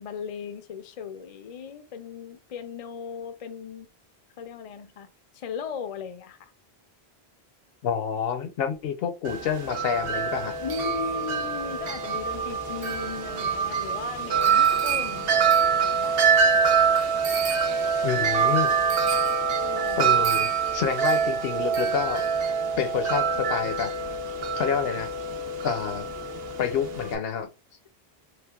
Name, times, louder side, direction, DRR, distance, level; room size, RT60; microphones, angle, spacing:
voice 1, 0.0-3.9 4.4-5.1 5.3-6.5 10.6-16.7 19.6-20.2, left 7 dB, 55° left, 0.4 m, -37 dB
voice 2, 7.8-10.5 18.0-18.7 20.0-22.2 22.8-23.9 24.6-25.1 25.6-26.1 26.6-27.5, left 7 dB, 70° left, 0.8 m, -28 dB
Wind chime, 9.3-27.2, right 6 dB, 70° right, 0.8 m, -25 dB
3.2 x 3.0 x 2.3 m
omnidirectional pair, 1.1 m